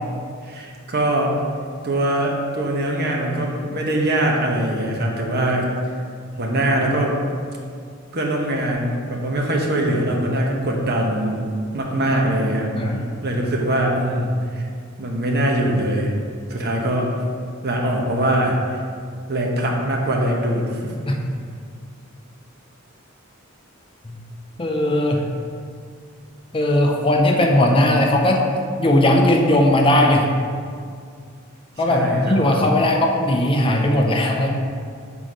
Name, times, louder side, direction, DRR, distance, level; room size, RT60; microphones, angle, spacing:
voice 1, 0.4-1.4 1.8-5.7 6.4-7.2 8.1-11.5 11.7-12.7 13.2-14.7 15.0-16.2 16.5-17.1 17.6-18.8 19.3-20.9 31.9-32.4, right 1 dB, 50° right, 0 dB, 0.9 m, -22 dB
voice 2, 12.7-13.0 21.1-21.2 24.0-24.2 24.6-25.2 26.5-28.4 28.8-30.3 31.8-34.5, left 1 dB, 25° left, 1 dB, 0.5 m, -18 dB
6.2 x 3.8 x 5.0 m, 2.2 s
head